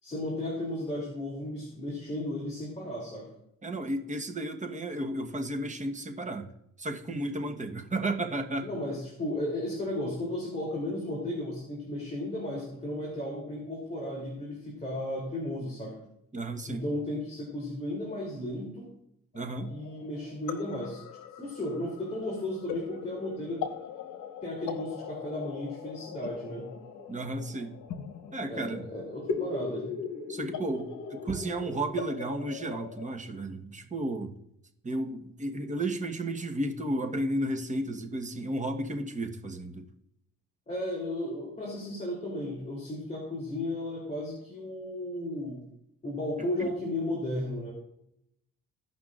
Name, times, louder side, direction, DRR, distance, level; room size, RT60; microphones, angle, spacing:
voice 1, 0.0-3.3 8.6-15.9 16.7-18.9 19.7-21.0 21.4-23.7 24.4-26.7 28.5-29.9 40.7-45.6 46.0-47.7, left 1 dB, 20° left, -3 dB, 3.1 m, -34 dB
voice 2, 3.6-6.5 6.8-8.7 16.3-16.8 19.3-19.7 27.1-27.8 28.3-28.8 30.3-34.3 34.8-39.9 46.6-46.7, right 1 dB, 25° right, 3 dB, 1.3 m, -33 dB
sound 1, 19.3-33.1, left 6 dB, 80° left, 0.9 m, -40 dB
16.5 x 5.7 x 2.5 m, 0.78 s
cardioid pair, 90°, 30 cm